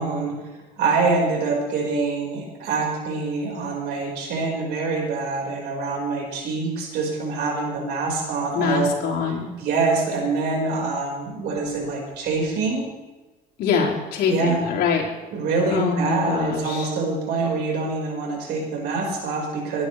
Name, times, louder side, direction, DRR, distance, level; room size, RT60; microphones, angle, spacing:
voice 1, 0.0-8.9 9.6-12.8 14.3-14.6 15.3-19.9, right 3 dB, 75° right, 0 dB, 5.0 m, -25 dB
voice 2, 8.5-9.6 13.6-15.1 15.7-16.9, left 6 dB, 75° left, -2 dB, 4.5 m, -24 dB
23.0 x 12.0 x 3.3 m, 1.2 s
cardioid pair, 110°, 17 cm